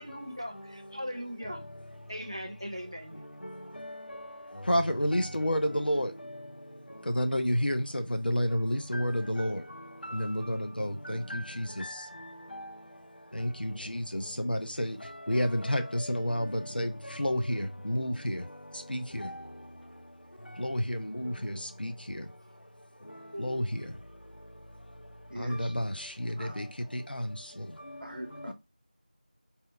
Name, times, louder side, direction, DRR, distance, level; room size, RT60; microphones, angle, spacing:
voice 1, 0.0-1.6 2.1-3.2 23.1-23.8, equal, 30° right, 0.5 m, -40 dB
voice 2, 4.7-6.1 7.2-9.6 10.1-11.9 13.4-15.0 15.3-16.9 17.2-18.4 18.9-19.3 20.6-21.9 23.4-23.6 25.4-25.9 26.4-26.6 27.1-27.3, equal, 85° left, 0.6 m, -30 dB
voice 3, 25.3-25.8 26.4-26.8 28.0-28.5, right 1 dB, 80° right, 0.6 m, -43 dB
2.8 x 2.1 x 3.6 m
figure-of-eight pair, 175°, 5 cm